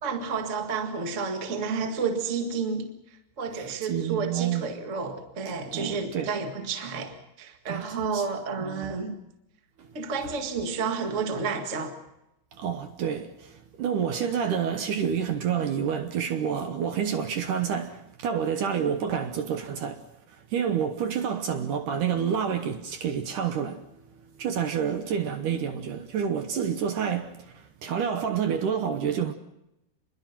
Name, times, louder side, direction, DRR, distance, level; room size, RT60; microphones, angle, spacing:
voice 1, 0.0-2.9 3.4-9.1 9.9-11.9, right 5 dB, 85° right, 0.6 m, -30 dB
voice 2, 3.6-4.7 5.7-6.3 7.7-7.9 8.1-8.3 8.6-8.9 9.8-9.9 12.5-23.8 24.4-29.3, right 8 dB, 70° right, 2.0 m, -29 dB
27.5 x 21.5 x 5.9 m
omnidirectional pair, 4.9 m